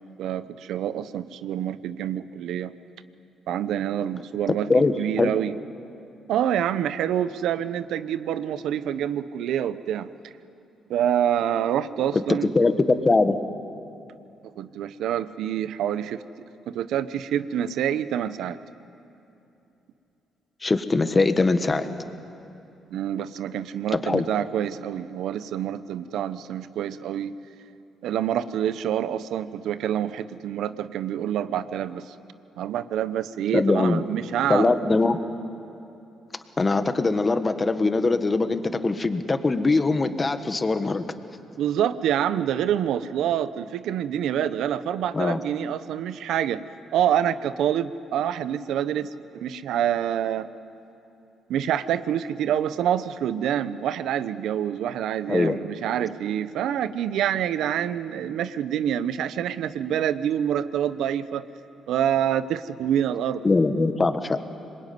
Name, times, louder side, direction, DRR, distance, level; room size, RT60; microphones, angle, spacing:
voice 1, 0.2-2.7 3.5-5.6 6.3-10.1 10.9-12.5 14.6-16.2 16.7-18.6 22.9-27.3 28.0-32.1 32.6-34.8 41.6-46.6 46.9-50.5 51.5-61.5 61.9-63.4, right 10 dB, 80° right, 13 dB, 0.9 m, -26 dB
voice 2, 4.5-5.3 12.5-13.4 20.6-21.9 23.9-24.3 33.5-34.0 34.5-35.2 36.6-41.0 45.1-45.4 55.3-55.6 63.4-64.4, left 3 dB, 25° left, 9 dB, 1.6 m, -22 dB
26.0 x 22.0 x 9.5 m, 2.9 s
cardioid pair, 90°, 0 cm